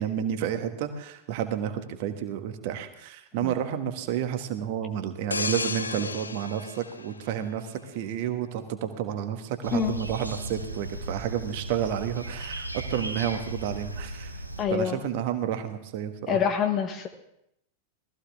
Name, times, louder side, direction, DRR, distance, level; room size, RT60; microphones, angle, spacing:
voice 1, 0.0-14.4 14.7-16.4, right 9 dB, 50° right, 8 dB, 1.5 m, -31 dB
sound 1, 5.3-8.0 8.4-8.7, left 3 dB, 80° left, 0.6 m, -34 dB
sound 2, 9.6-14.6, right 1 dB, 85° right, 1.2 m, -36 dB
voice 2, 14.6-15.0 16.3-17.1, left 8 dB, 30° left, 5 dB, 1.2 m, -26 dB
18.5 x 14.5 x 3.6 m, 0.78 s
figure-of-eight pair, 90°, 0 cm